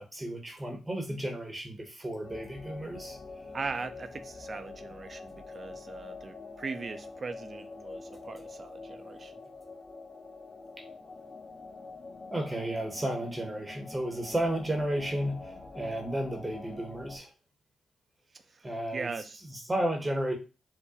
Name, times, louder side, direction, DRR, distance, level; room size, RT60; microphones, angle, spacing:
voice 1, 0.0-3.2 10.8-10.9 12.3-17.3 18.6-19.1 19.5-20.3, right 1 dB, 20° right, 0.9 m, -33 dB
sound 1, 2.2-17.2, left 3 dB, 35° left, 1.0 m, -45 dB
voice 2, 3.5-9.3 18.9-19.4, right 4 dB, 45° right, 0.5 m, -39 dB
4.6 x 2.1 x 2.8 m
supercardioid pair, 55°, 0 cm